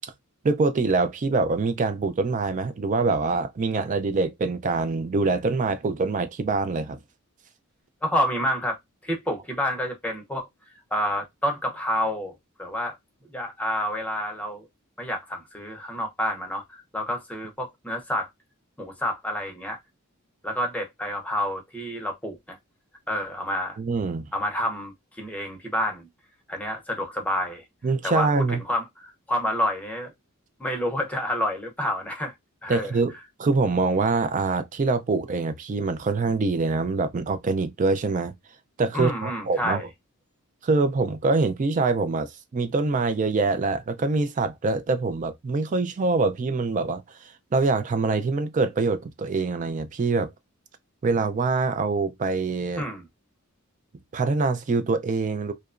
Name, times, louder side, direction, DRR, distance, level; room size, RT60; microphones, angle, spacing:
voice 1, 0.4-7.0 23.8-24.3 27.8-28.6 32.7-33.1 33.4-38.3 38.8-39.8 40.6-47.0 47.5-50.3 51.0-52.8 54.1-55.5, right 3 dB, 35° right, 0.4 m, -24 dB
voice 2, 8.0-8.8 9.0-10.5 10.9-12.3 12.6-13.0 13.3-14.7 15.0-18.3 18.8-19.8 20.4-22.6 23.1-23.8 24.3-26.1 26.5-27.6 28.0-30.1 30.6-32.3 32.6-33.0 38.9-39.9 52.8-53.0, equal, 5° left, 0.6 m, -28 dB
2.8 x 2.2 x 2.4 m
head